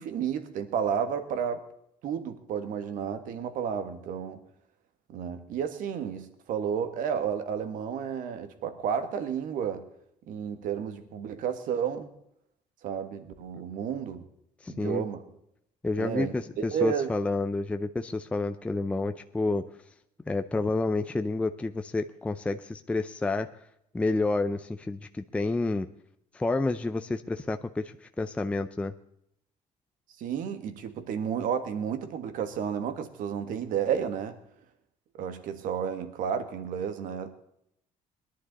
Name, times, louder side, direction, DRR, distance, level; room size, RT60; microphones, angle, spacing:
voice 1, 0.0-1.6 2.0-4.4 5.1-9.8 10.3-12.1 12.8-14.2 14.7-15.2 16.0-17.1 30.2-34.4 35.1-37.4, right 8 dB, 70° right, 9 dB, 1.7 m, -32 dB
voice 2, 14.6-15.0 15.8-19.6 20.3-23.5 23.9-25.9 26.3-28.9, left 2 dB, 10° left, 8 dB, 0.4 m, -29 dB
21.0 x 11.0 x 4.1 m, 0.75 s
cardioid pair, 160°, 14 cm